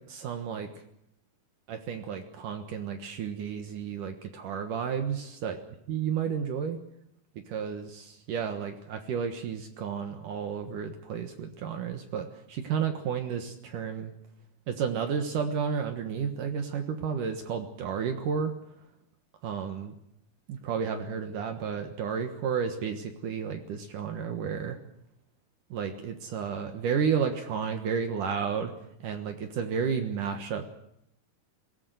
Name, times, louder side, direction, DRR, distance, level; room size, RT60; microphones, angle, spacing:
voice 1, 0.1-0.7 1.7-5.6 5.9-6.8 7.5-14.1 14.7-18.5 19.4-19.9 20.5-24.8 25.7-28.7 29.0-30.7, right 7 dB, 65° right, 6 dB, 2.7 m, -32 dB
21.0 x 18.0 x 7.9 m, 0.78 s
omnidirectional pair, 4.4 m